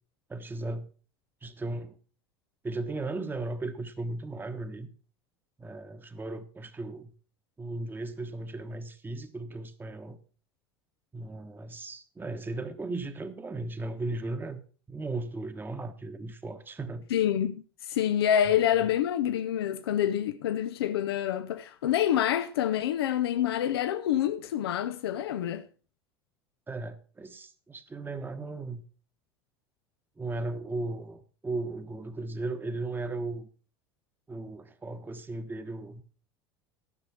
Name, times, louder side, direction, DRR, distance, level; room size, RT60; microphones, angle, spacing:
voice 1, 0.3-0.9 1.4-2.0 2.6-4.9 5.6-7.1 7.6-10.2 11.1-14.6 14.9-17.1 26.7-28.8 30.2-33.5 34.3-36.0, right 2 dB, 15° right, 1.1 m, -36 dB
voice 2, 17.1-25.6, left 10 dB, 75° left, 0.6 m, -27 dB
13.5 x 6.2 x 5.8 m
hypercardioid pair, 75°, 13 cm